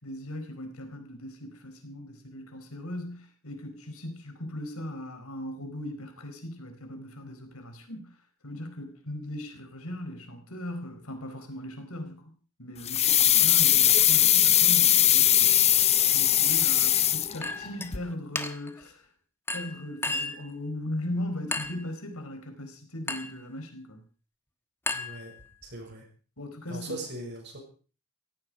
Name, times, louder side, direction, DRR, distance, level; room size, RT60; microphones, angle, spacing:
voice 1, 0.0-8.1 8.4-12.3 12.6-15.5 16.0-19.1 19.5-24.0 26.4-27.0, left 1 dB, 70° left, 6 dB, 4.4 m, -38 dB
sound 1, 12.9-17.7 17.9-18.0, left 11 dB, 30° left, 0.7 m, -20 dB
voice 2, 15.9-16.2 24.9-25.3 25.6-26.1 26.7-27.6, right 1 dB, 50° right, 2 dB, 6.6 m, -40 dB
Chink clink, 17.4-17.9 18.4-18.8 19.5-20.5 21.5-21.9 23.1-23.4 24.9-25.7, left 2 dB, 10° left, 1.3 m, -34 dB
16.5 x 16.0 x 4.8 m, 0.39 s
head